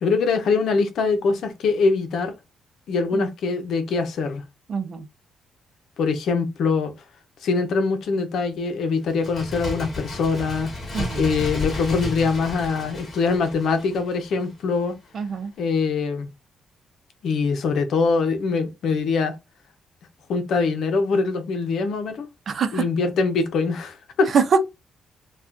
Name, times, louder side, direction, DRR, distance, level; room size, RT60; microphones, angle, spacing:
voice 1, 0.0-2.3 2.9-4.4 6.0-6.9 7.4-10.7 11.2-14.9 15.6-16.3 17.2-19.3 20.3-22.3 22.7-24.3, left 4 dB, 70° left, 0.8 m, -23 dB
voice 2, 4.7-5.0 10.9-11.2 15.1-15.5 22.5-22.8 24.3-24.4, right 6 dB, 50° right, 0.6 m, -24 dB
Bird, 9.1-14.6 14.9-15.0, left 2 dB, 30° left, 1.8 m, -33 dB
4.8 x 2.4 x 2.6 m
cardioid pair, 135°, 0 cm